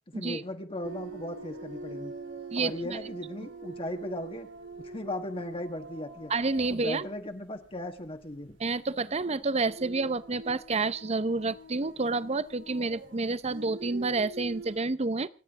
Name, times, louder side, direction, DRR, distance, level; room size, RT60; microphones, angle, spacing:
voice 1, 0.1-2.1 2.5-4.5 4.8-6.3 6.7-8.6, left 1 dB, 30° left, 6 dB, 1.5 m, -37 dB
sound 1, 0.8-8.2 8.5-8.7 9.4-14.8, right 3 dB, 75° right, 3.3 m, -44 dB
voice 2, 2.5-3.0 6.3-7.1 8.6-15.3, right 3 dB, 35° right, 16 dB, 0.7 m, -29 dB
28.0 x 10.0 x 3.7 m, 0.35 s
head